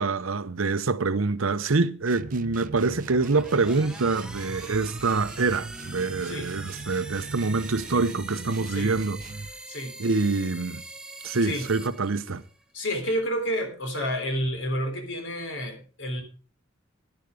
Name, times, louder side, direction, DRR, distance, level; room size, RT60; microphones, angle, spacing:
voice 1, 0.0-9.2 10.0-10.8 11.2-12.4, right 3 dB, 85° right, 0.9 m, -25 dB
sound 1, 2.0-9.6, right 4 dB, 40° right, 0.5 m, -41 dB
sound 2, 2.9-12.6, right 2 dB, 5° right, 0.9 m, -43 dB
sound 3, 4.7-8.1, equal, 20° right, 1.7 m, -53 dB
voice 2, 12.7-16.2, equal, 65° left, 3.5 m, -30 dB
11.0 x 10.5 x 5.0 m
head